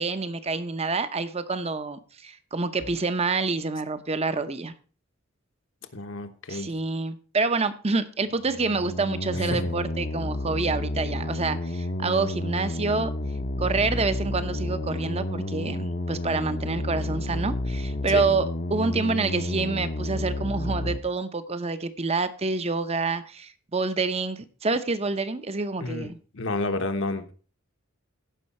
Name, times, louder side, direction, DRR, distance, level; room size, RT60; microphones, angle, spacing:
voice 1, 0.0-4.7 6.5-13.1 13.6-26.2, right 3 dB, 30° right, 0.8 m, -27 dB
sound 1, 2.8-2.9 8.4-21.0, left 1 dB, 45° left, 0.8 m, -30 dB
voice 2, 5.9-6.7 9.3-9.7 18.1-18.2 25.8-27.3, left 2 dB, 65° left, 1.2 m, -30 dB
16.0 x 5.6 x 4.3 m
head